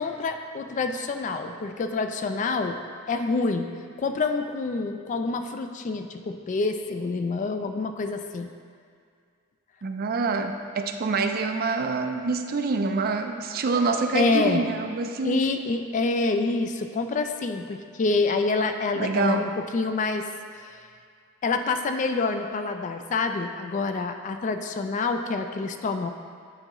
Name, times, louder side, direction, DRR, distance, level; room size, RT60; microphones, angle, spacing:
voice 1, 0.0-2.8 3.1-3.7 4.0-8.5 14.1-14.7 15.2-20.3 20.5-20.8 21.4-26.1, left 3 dB, 35° left, 7 dB, 0.3 m, -27 dB
voice 2, 9.8-15.4 19.0-19.4, right 4 dB, 45° right, 6 dB, 0.4 m, -26 dB
9.0 x 4.7 x 3.0 m, 2.2 s
head